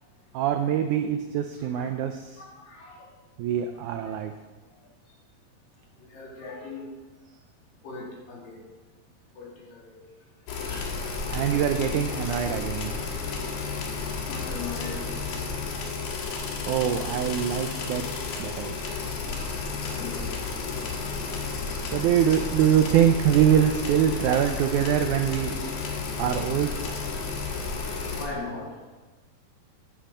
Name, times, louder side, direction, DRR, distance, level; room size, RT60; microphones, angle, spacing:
voice 1, 0.3-2.4 3.4-4.3 11.3-12.9 16.7-18.0 18.4-18.7 21.9-25.5 26.2-26.7, right 10 dB, 85° right, 6 dB, 1.7 m, -24 dB
voice 2, 1.6-1.9 2.4-3.1 4.0-4.1 6.0-6.9 7.8-8.6 9.3-10.0 10.7-11.4 14.2-15.7 19.9-20.5 26.0-26.2 28.1-29.0, left 4 dB, 70° left, -4 dB, 4.5 m, -40 dB
sound 1, 10.5-28.3, left 4 dB, 90° left, 3.3 m, -32 dB
9.8 x 8.9 x 5.5 m, 1.2 s
omnidirectional pair, 4.2 m